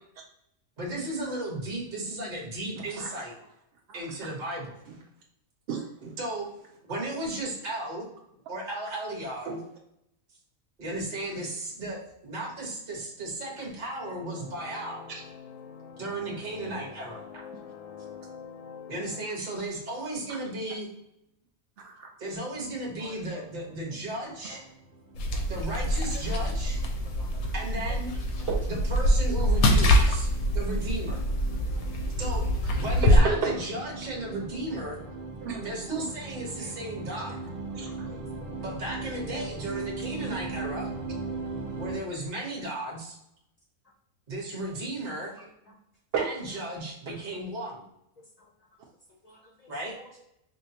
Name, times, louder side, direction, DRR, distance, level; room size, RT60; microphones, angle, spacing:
voice 1, 0.8-3.3 3.9-4.8 6.2-6.5 6.9-8.1 8.5-9.6 10.8-12.0 12.2-15.1 16.0-17.4 18.9-20.9 22.2-24.6 25.5-26.8 27.5-28.1 28.7-31.2 32.2-32.4 32.7-35.0 35.6-37.4 38.6-40.9 41.8-43.2 44.3-45.3 46.2-47.8 49.7-49.9, right 1 dB, 35° right, -2 dB, 1.0 m, -35 dB
voice 2, 2.8-3.2 3.9-4.0 5.7-6.1 9.5-9.6 15.1-15.2 17.5-17.7 20.3-20.4 21.8-22.1 28.5-28.7 31.8-31.9 33.0-33.6 35.4-36.0 37.7-38.1 44.7-44.8 46.1-46.3 47.1-47.2, right 5 dB, 65° right, -1 dB, 0.6 m, -33 dB
sound 1, 13.9-19.2, left 7 dB, 65° left, 0.8 m, -45 dB
sound 2, 22.5-42.0, right 3 dB, 20° right, 0.6 m, -40 dB
voice 3, 23.0-23.7 26.1-26.7 27.1-27.5 29.3-29.4 29.7-29.8 36.6-36.7 38.1-38.6 45.4-45.5 49.2-49.7 50.0-50.1, left 2 dB, 50° left, -2 dB, 0.4 m, -50 dB
sound 3, 25.1-33.2, left 1 dB, 85° left, 1.1 m, -25 dB
4.7 x 2.1 x 2.7 m, 0.79 s
omnidirectional pair, 1.5 m